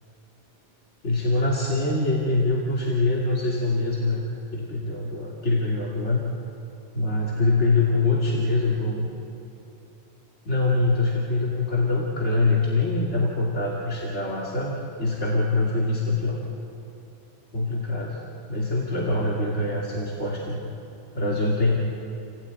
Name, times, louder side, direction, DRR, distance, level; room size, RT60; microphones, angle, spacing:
voice 1, 1.0-6.2 6.9-9.1 10.4-16.4 17.5-18.2 18.5-20.6 21.1-21.8, left 2 dB, 80° left, -3 dB, 2.8 m, -24 dB
29.0 x 16.5 x 9.3 m, 2.9 s
omnidirectional pair, 1.2 m